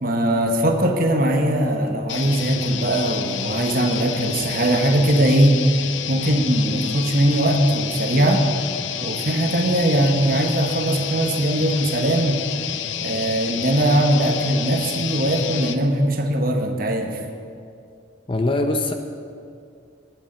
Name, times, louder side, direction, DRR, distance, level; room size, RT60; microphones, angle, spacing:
voice 1, 0.0-5.6 6.1-8.4 9.0-12.5 13.0-17.2, right 1 dB, 50° right, 4 dB, 1.1 m, -20 dB
sound 1, 2.1-15.8, left 8 dB, 75° left, 0.6 m, -29 dB
voice 2, 18.3-18.9, left 2 dB, 25° left, 6 dB, 0.6 m, -21 dB
19.0 x 9.2 x 4.3 m, 2.4 s
head